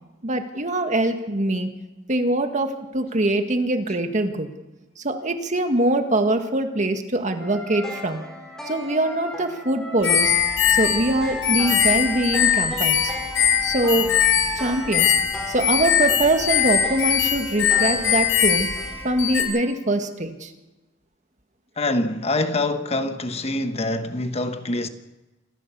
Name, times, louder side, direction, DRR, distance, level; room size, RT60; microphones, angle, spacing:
voice 1, 0.2-1.7 2.1-4.5 5.0-8.2 8.7-10.3 10.7-13.1 13.6-14.2 14.6-15.1 15.5-18.7 19.0-20.5, right 1 dB, 40° right, 1.9 m, -23 dB
sound 1, 7.4-19.7, left 1 dB, 5° left, 5.1 m, -36 dB
sound 2, 10.0-19.4, left 8 dB, 85° left, 5.0 m, -21 dB
voice 2, 21.8-24.9, left 2 dB, 35° left, 1.1 m, -25 dB
27.0 x 14.5 x 7.0 m
head